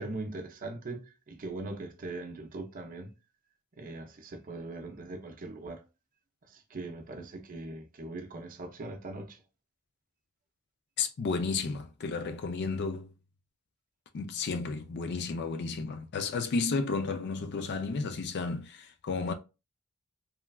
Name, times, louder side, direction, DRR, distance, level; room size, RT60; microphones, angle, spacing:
voice 1, 0.0-3.1 3.7-5.8 6.5-9.4, right 2 dB, 40° right, 0.5 m, -40 dB
voice 2, 11.0-13.1 14.1-19.3, left 4 dB, 50° left, 0.4 m, -32 dB
3.1 x 2.2 x 2.3 m
head